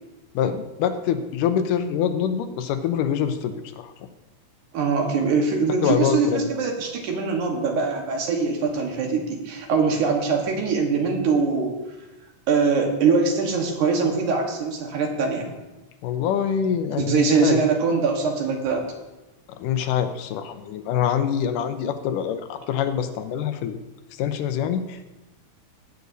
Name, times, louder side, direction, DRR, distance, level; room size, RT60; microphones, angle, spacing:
voice 1, 0.4-3.9 5.8-6.4 16.0-17.6 19.5-23.8 24.2-25.0, left 8 dB, 90° left, 8 dB, 2.3 m, -25 dB
voice 2, 4.7-11.7 12.5-15.5 17.0-18.9, right 4 dB, 75° right, 2 dB, 2.7 m, -22 dB
17.5 x 8.1 x 2.7 m, 1.1 s
omnidirectional pair, 3.6 m